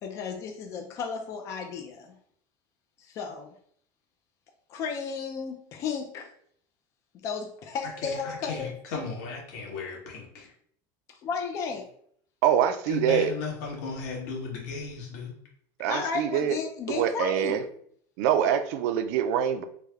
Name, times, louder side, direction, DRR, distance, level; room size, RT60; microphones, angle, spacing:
voice 1, 0.0-2.1 3.1-3.5 4.7-6.3 7.2-8.7 11.2-11.8 15.9-17.6, left 5 dB, 35° left, 3 dB, 0.4 m, -33 dB
voice 2, 8.0-10.5 12.9-15.3, left 5 dB, 80° left, -2 dB, 1.4 m, -35 dB
voice 3, 12.4-13.3 15.8-16.6 16.9-17.6 18.2-19.6, right 9 dB, 70° right, 9 dB, 0.4 m, -25 dB
3.3 x 2.1 x 3.4 m, 0.63 s
cardioid pair, 165°, 9 cm